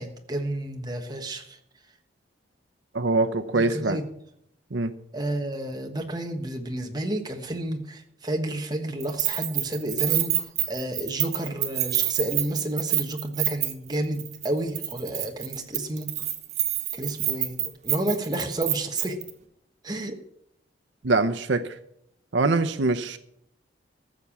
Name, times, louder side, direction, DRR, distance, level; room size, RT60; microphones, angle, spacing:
voice 1, 0.0-1.6 3.5-4.0 5.1-16.1 16.9-19.2 19.8-20.2, right 1 dB, 20° right, 4 dB, 1.3 m, -31 dB
voice 2, 2.9-4.0 4.7-4.9 21.0-21.6 22.3-23.2, right 3 dB, 75° right, 10 dB, 0.7 m, -23 dB
Keys jangling, 9.0-13.9 14.2-14.5 14.8-19.3, right 11 dB, 35° right, 1.1 m, -27 dB
14.0 x 6.9 x 7.2 m, 0.74 s
head